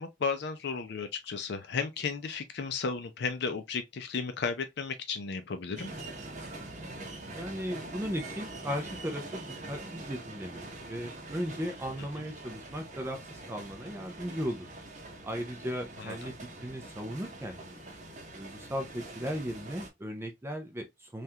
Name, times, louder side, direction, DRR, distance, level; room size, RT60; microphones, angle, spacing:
voice 1, 0.0-5.9 16.0-16.3, left 5 dB, 55° left, 0.4 m, -34 dB
sound 1, 5.8-19.9, right 2 dB, 40° right, 0.7 m, -44 dB
voice 2, 7.3-14.7 15.2-16.3 16.6-17.8 18.4-21.2, equal, 10° right, 0.4 m, -37 dB
3.4 x 2.4 x 2.7 m
head